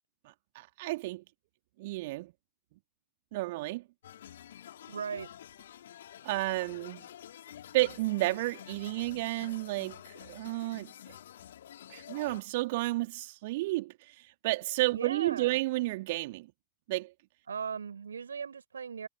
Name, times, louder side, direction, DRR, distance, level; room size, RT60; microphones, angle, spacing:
voice 1, 0.5-1.2 1.8-2.3 3.3-3.8 6.2-7.0 7.7-11.1 11.9-16.5 16.9-17.1, right 20 dB, 50° right, 3.3 m, -32 dB
sound 1, 4.0-12.4, left 11 dB, 60° left, 5.9 m, -49 dB
voice 2, 4.9-5.3 14.9-15.6 17.5-19.1, right 6 dB, 70° right, 5.7 m, -38 dB
figure-of-eight pair, 90°, 0 cm